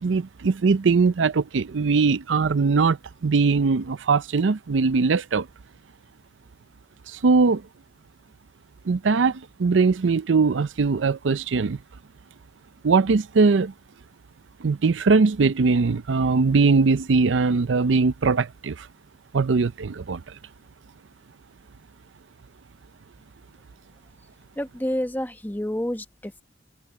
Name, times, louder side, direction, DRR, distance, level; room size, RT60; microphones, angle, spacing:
voice 1, 0.0-3.0 3.2-5.5 7.2-7.6 8.9-9.3 9.6-11.8 12.8-13.7 14.6-18.7 19.3-20.2, right 4 dB, 90° right, 0.5 m, -20 dB
voice 2, 24.5-26.4, equal, 10° left, 1.0 m, -29 dB
head